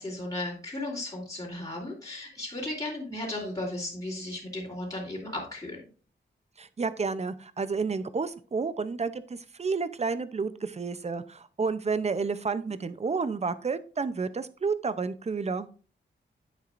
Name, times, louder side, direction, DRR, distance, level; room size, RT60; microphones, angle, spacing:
voice 1, 0.0-5.8, left 1 dB, 20° left, -6 dB, 3.3 m, -35 dB
voice 2, 6.6-15.7, right 4 dB, 35° right, 14 dB, 0.6 m, -30 dB
9.8 x 8.0 x 2.6 m, 0.39 s
wide cardioid pair, 90°, 20 cm